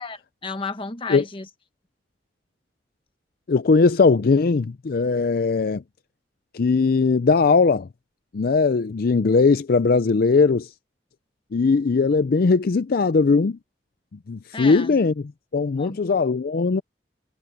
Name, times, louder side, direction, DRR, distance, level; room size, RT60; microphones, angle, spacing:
voice 1, 0.0-1.5 14.5-15.0 15.8-16.0, left 4 dB, 30° left, 1.4 m, -33 dB
voice 2, 3.5-5.8 6.5-7.9 8.3-10.7 11.5-13.6 14.3-15.1 15.5-16.8, left 4 dB, 55° left, 0.4 m, -19 dB
head